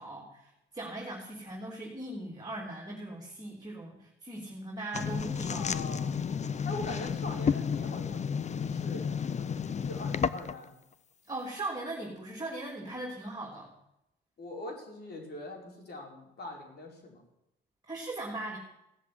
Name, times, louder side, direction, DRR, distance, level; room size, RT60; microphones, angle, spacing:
voice 1, 0.0-5.6 11.3-13.7 17.9-18.6, right 2 dB, 20° right, -1 dB, 3.3 m, -39 dB
sound 1, 4.9-10.7, left 6 dB, 35° left, 0.7 m, -32 dB
voice 2, 5.5-6.1 6.6-10.8 14.4-17.2, left 2 dB, 55° left, 1 dB, 4.9 m, -42 dB
16.5 x 7.3 x 9.7 m, 0.85 s
cardioid pair, 90°, 20 cm